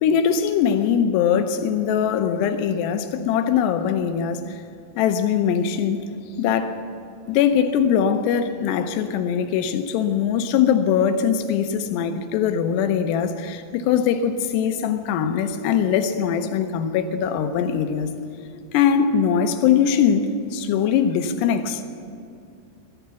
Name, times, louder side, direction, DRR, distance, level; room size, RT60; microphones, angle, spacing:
voice 1, 0.0-4.6 5.0-6.1 6.4-6.8 7.3-18.1 18.7-21.8, left 8 dB, 75° left, 8 dB, 2.9 m, -21 dB
16.0 x 12.0 x 7.0 m, 2.5 s
omnidirectional pair, 5.1 m